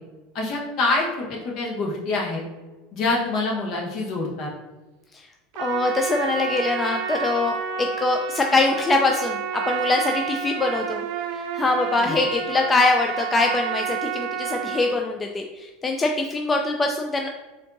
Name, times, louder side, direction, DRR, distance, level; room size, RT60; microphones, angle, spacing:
voice 1, 0.3-2.4 2.9-4.5 12.0-12.2, left 3 dB, 55° left, -2 dB, 1.1 m, -26 dB
Trumpet, 5.5-15.0, right 7 dB, 65° right, 0.4 m, -30 dB
voice 2, 5.6-11.0 11.3-17.3, left 3 dB, 20° left, 3 dB, 0.3 m, -23 dB
4.3 x 2.6 x 2.6 m, 1.2 s
hypercardioid pair, 90°, 0 cm